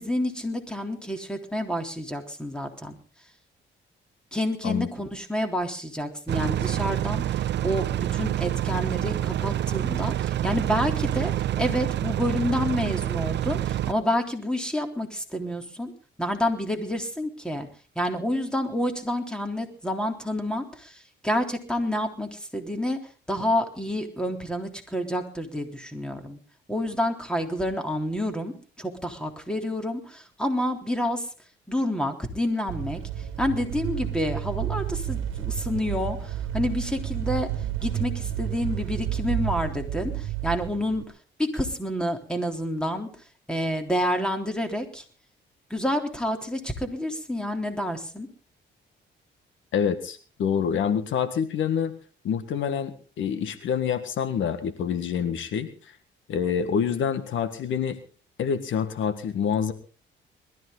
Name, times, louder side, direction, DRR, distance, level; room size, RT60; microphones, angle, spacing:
voice 1, 0.0-3.0 4.3-15.9 16.2-17.7 18.0-23.0 23.3-26.4 26.7-31.3 31.7-33.0 33.4-37.5 37.8-41.0 41.4-43.1 43.5-45.0 45.7-48.3, left 1 dB, 5° left, 4 dB, 3.6 m, -29 dB
sound 1, 6.3-13.9, right 12 dB, 60° right, 0.7 m, -27 dB
sound 2, 32.7-41.0, right 11 dB, 80° right, 1.5 m, -31 dB
voice 2, 49.7-51.9 52.2-55.7 56.3-58.0 58.4-59.7, left 7 dB, 75° left, 10 dB, 1.7 m, -26 dB
21.5 x 14.0 x 4.0 m, 0.39 s
cardioid pair, 90°, 20 cm